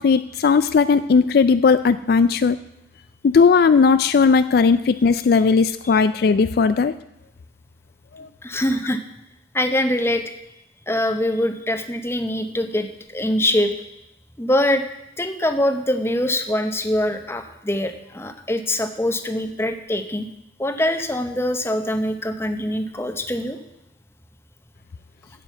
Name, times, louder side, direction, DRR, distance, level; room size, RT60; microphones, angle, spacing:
voice 1, 0.0-2.6 3.2-6.9 8.1-8.3, left 5 dB, 60° left, 13 dB, 0.3 m, -17 dB
voice 2, 8.4-9.0 9.5-10.2 10.9-13.7 14.4-14.8 15.2-20.3 20.6-23.6, left 1 dB, 15° left, 7 dB, 0.8 m, -23 dB
9.1 x 7.6 x 8.1 m, 0.87 s
head